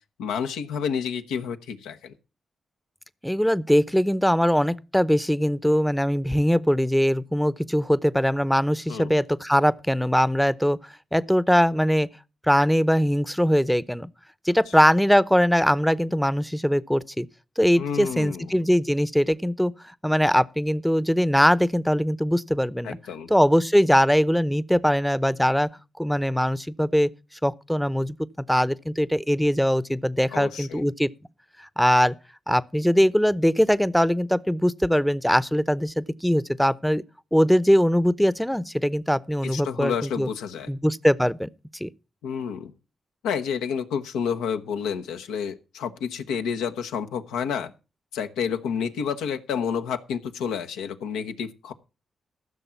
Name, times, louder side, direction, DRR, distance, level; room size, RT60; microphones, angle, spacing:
voice 1, 0.2-2.1 8.9-9.1 17.8-18.5 22.8-23.3 30.3-30.8 39.5-40.7 42.2-42.7 43.2-47.7 48.1-51.7, left 7 dB, 85° left, 0.9 m, -29 dB
voice 2, 3.2-12.1 12.4-14.1 14.4-17.3 17.6-23.0 23.3-25.7 26.0-27.1 27.4-28.2 28.5-31.1 31.6-32.1 32.5-37.0 37.3-40.3 40.7-41.9, equal, 5° left, 0.7 m, -21 dB
14.5 x 6.5 x 5.8 m
supercardioid pair, 45°, 0 cm